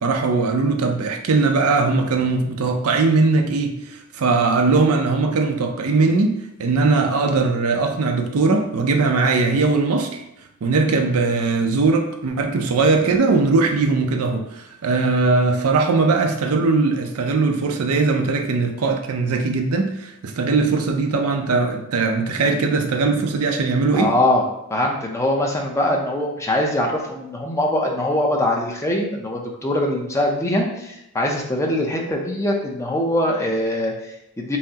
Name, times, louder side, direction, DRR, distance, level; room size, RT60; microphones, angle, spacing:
voice 1, 0.0-10.2 10.6-24.1, right 3 dB, 70° right, 4 dB, 0.5 m, -20 dB
voice 2, 23.9-24.4 24.7-34.6, left 1 dB, 15° left, -1 dB, 0.5 m, -22 dB
5.5 x 2.0 x 2.8 m, 0.83 s
head